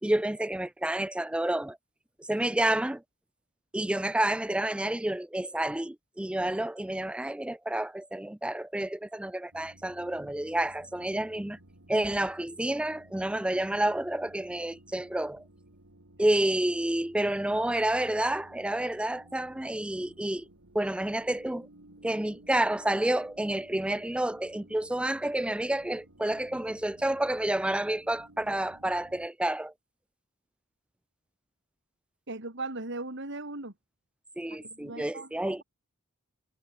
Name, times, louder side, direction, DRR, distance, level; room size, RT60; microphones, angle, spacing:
voice 1, 0.0-1.8 2.2-3.0 3.7-11.6 11.9-15.4 16.2-20.5 20.7-21.7 22.0-29.7 34.4-35.6, right 1 dB, 5° right, 0.4 m, -29 dB
sound 1, 9.5-29.3, right 1 dB, 85° right, 3.2 m, -56 dB
voice 2, 32.3-33.7 34.5-35.3, right 2 dB, 60° right, 3.4 m, -38 dB
head